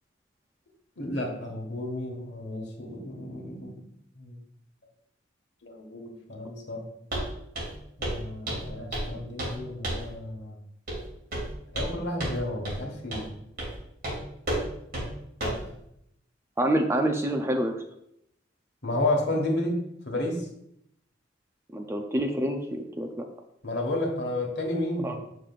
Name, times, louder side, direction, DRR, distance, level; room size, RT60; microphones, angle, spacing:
voice 1, 1.0-3.9 4.2-4.4 5.6-6.8 8.0-10.5 11.7-13.3 15.4-15.6 18.8-19.8 20.0-20.4 23.6-25.2, left 1 dB, 60° left, 1 dB, 1.5 m, -31 dB
Walk footsteps, 7.1-7.3 7.5-7.8 8.0-8.2 8.5-9.1 9.4-9.6 9.8-10.1 10.9-11.0 11.3-11.9 12.2-12.4 12.6-12.8 13.1-13.3 13.6-13.7 14.0-14.2 14.5-14.6 14.9-15.1 15.4-15.6, right 1 dB, 50° right, 2.8 m, -31 dB
voice 2, 16.6-17.8 21.7-23.3 25.0-25.2, right 1 dB, 15° right, 4 dB, 0.5 m, -27 dB
7.5 x 6.6 x 2.4 m, 0.76 s
head